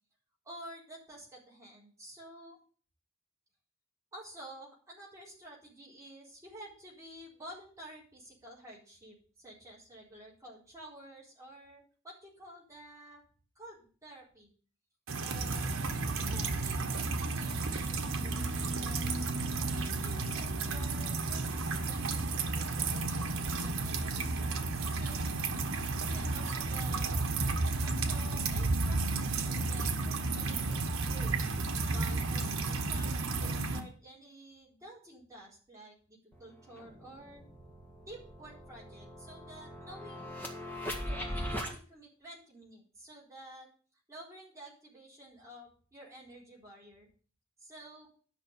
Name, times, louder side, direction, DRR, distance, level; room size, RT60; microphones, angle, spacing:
voice 1, 0.4-2.6 4.1-13.2 13.6-14.5 15.2-15.7 16.2-19.3 19.7-25.4 26.0-30.6 31.0-31.4 31.9-33.1 33.4-37.4 38.1-40.5 41.0-43.7 44.1-47.1 47.6-48.1, right 1 dB, 15° right, -5 dB, 4.1 m, -51 dB
sound 1, 15.1-33.8, right 3 dB, 75° right, 1.4 m, -32 dB
sound 2, 36.3-36.4 36.8-41.7, equal, 10° left, 1.8 m, -40 dB
11.0 x 5.9 x 6.9 m, 0.40 s
head